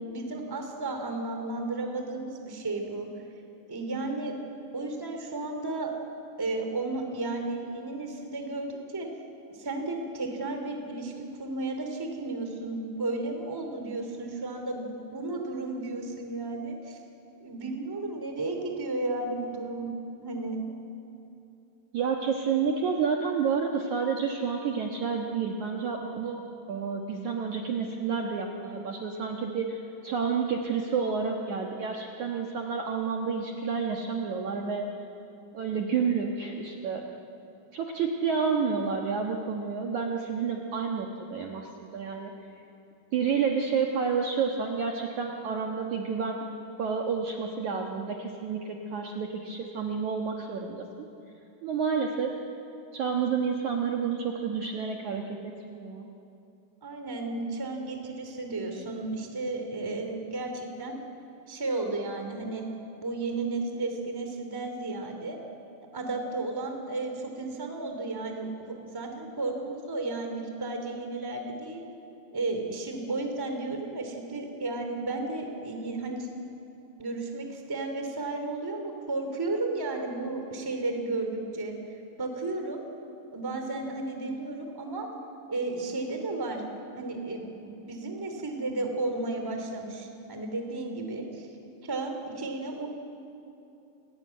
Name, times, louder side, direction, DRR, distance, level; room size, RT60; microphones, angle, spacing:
voice 1, 0.1-3.1 3.7-4.4 4.7-5.9 6.4-9.1 9.5-17.0 17.4-19.9 20.2-20.6 56.8-61.0 61.5-62.6 63.0-65.4 65.9-71.9 72.3-76.3 77.0-81.7 82.2-82.8 83.3-85.1 85.5-86.6 87.0-91.5 91.8-92.9, right 2 dB, 5° right, 4 dB, 1.8 m, -33 dB
voice 2, 21.9-26.4 26.7-29.8 30.0-34.9 35.5-37.0 37.7-42.3 43.1-46.5 46.8-50.9 51.6-52.3 52.9-56.1, right 6 dB, 60° right, 1 dB, 2.1 m, -30 dB
29.0 x 18.5 x 9.5 m, 2.8 s
omnidirectional pair, 5.0 m